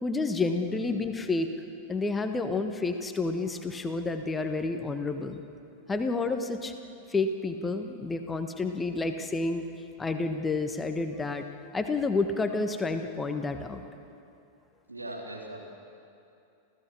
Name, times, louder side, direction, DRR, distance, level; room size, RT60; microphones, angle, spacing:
voice 1, 0.0-1.5 1.9-5.4 5.9-6.7 7.1-9.6 10.0-11.4 11.7-13.8, left 3 dB, 15° left, 7 dB, 1.3 m, -29 dB
voice 2, 14.9-15.7, right 1 dB, 80° right, 0 dB, 3.2 m, -40 dB
29.0 x 15.5 x 6.6 m, 2.6 s
figure-of-eight pair, 90°, 0 cm